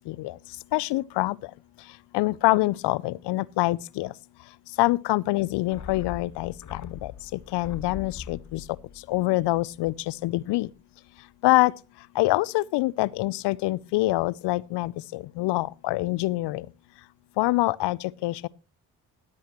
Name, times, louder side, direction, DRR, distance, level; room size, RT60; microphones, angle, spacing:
voice 1, 0.1-1.5 1.8-4.1 4.8-10.7 11.4-16.7 17.4-18.5, left 19 dB, 75° left, 0.5 m, -26 dB
sound 1, 5.7-10.3 10.6-10.7, left 7 dB, 45° left, 1.0 m, -42 dB
19.0 x 8.5 x 3.0 m
hypercardioid pair, 45°, 42 cm